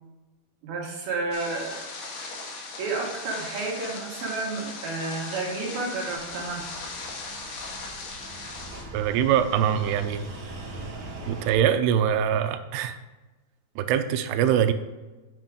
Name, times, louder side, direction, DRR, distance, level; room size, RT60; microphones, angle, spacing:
voice 1, 0.6-1.9 2.8-6.9, right 3 dB, 70° right, -2 dB, 3.2 m, -31 dB
sound 1, 1.3-8.8, left 3 dB, 80° left, 3.4 m, -38 dB
sound 2, 6.1-11.5, right 2 dB, 50° right, 2.3 m, -41 dB
voice 2, 8.9-10.2 11.3-13.0 13.8-14.7, right 9 dB, 85° right, 10 dB, 2.7 m, -23 dB
9.1 x 6.0 x 3.6 m, 1.2 s
omnidirectional pair, 4.7 m